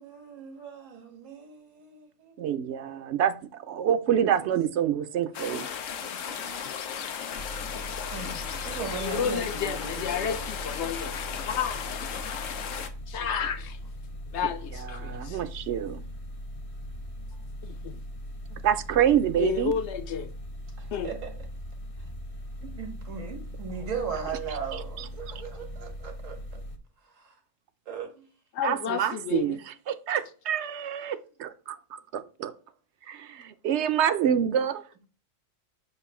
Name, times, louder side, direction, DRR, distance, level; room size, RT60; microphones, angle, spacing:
voice 1, 0.0-2.4 4.4-4.5 5.9-6.6 8.1-10.5 20.8-21.3 22.6-26.6 27.1-27.4 27.9-28.3, right 6 dB, 85° right, 1.8 m, -38 dB
voice 2, 2.4-5.7 14.8-16.0 18.6-19.7 24.3-24.4 24.7-25.1 28.6-29.6 29.9-32.5 33.1-34.8, right 9 dB, 70° right, 0.8 m, -27 dB
sound 1, 5.3-12.9, left 7 dB, 85° left, 1.1 m, -35 dB
sound 2, 7.3-26.8, equal, 35° left, 0.6 m, -40 dB
voice 3, 9.0-11.2 11.4-12.0 13.1-13.8 14.3-15.4 17.6-18.0 19.4-20.3 20.9-21.1 28.5-29.6, left 8 dB, 65° left, 0.9 m, -31 dB
6.8 x 2.5 x 5.5 m
omnidirectional pair, 1.3 m